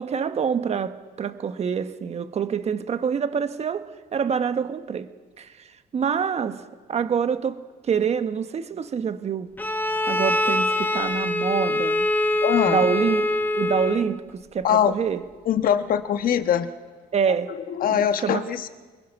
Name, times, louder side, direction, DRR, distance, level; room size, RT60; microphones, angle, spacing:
voice 1, 0.0-5.1 5.4-6.6 6.9-9.5 10.1-12.1 12.7-15.2 17.1-17.6 17.9-18.4, right 7 dB, 40° right, 1.3 m, -26 dB
Bowed string instrument, 9.6-14.2, left 1 dB, 10° left, 1.1 m, -24 dB
voice 2, 12.4-12.9 14.6-14.9 15.4-16.7 17.7-18.7, left 9 dB, 60° left, 1.4 m, -22 dB
28.5 x 20.5 x 5.9 m
cardioid pair, 110°, 17 cm